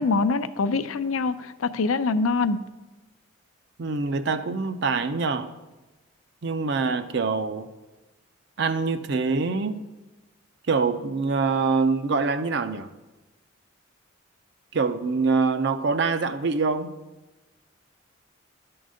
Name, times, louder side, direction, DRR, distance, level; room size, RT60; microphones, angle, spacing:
voice 1, 0.0-2.6, left 4 dB, 85° left, 12 dB, 0.5 m, -24 dB
voice 2, 3.8-5.5 6.4-7.7 8.6-9.8 10.7-12.9 14.7-16.9, right 4 dB, 55° right, 11 dB, 0.5 m, -25 dB
11.0 x 3.9 x 6.3 m, 1.1 s
head